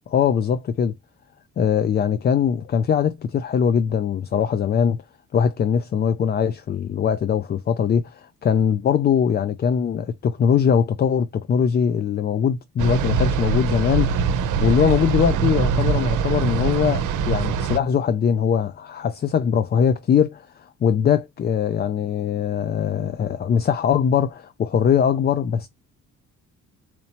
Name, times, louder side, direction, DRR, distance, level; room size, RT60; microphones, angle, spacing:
voice 1, 0.1-0.9 1.6-5.0 5.3-14.2 14.6-25.7, left 7 dB, 35° left, 0.4 m, -21 dB
sound 1, 12.8-17.8, right 6 dB, 85° right, 0.7 m, -22 dB
4.3 x 2.8 x 2.8 m
cardioid pair, 90°, 30 cm